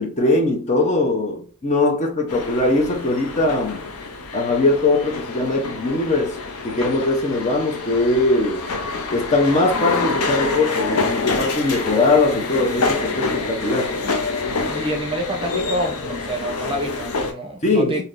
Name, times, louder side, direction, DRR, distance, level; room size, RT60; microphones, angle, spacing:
voice 1, 0.0-3.9 4.3-6.4 6.6-8.7 9.1-14.0 17.6-18.0, left 2 dB, 30° left, 0.7 m, -20 dB
sound 1, 2.3-17.3, left 3 dB, 75° left, 0.7 m, -27 dB
voice 2, 14.6-18.0, right 1 dB, 25° right, 0.7 m, -27 dB
3.4 x 2.7 x 2.5 m
head